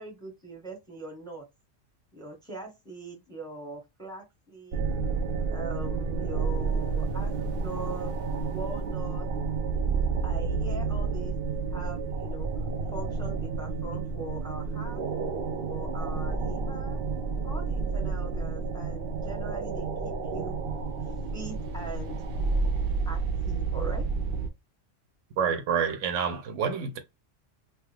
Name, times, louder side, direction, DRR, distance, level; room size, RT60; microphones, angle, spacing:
voice 1, 0.0-1.4 2.1-4.8 5.5-8.1 8.5-9.3 10.2-11.3 11.7-12.5 12.9-15.0 15.6-17.0 17.4-20.6 21.3-22.2 23.1-24.1, right 2 dB, 5° left, 0.9 m, -41 dB
sound 1, 4.7-24.5, right 4 dB, 60° right, 0.7 m, -30 dB
voice 2, 25.4-27.0, right 7 dB, 80° right, 1.0 m, -28 dB
2.8 x 2.4 x 3.2 m
omnidirectional pair, 1.3 m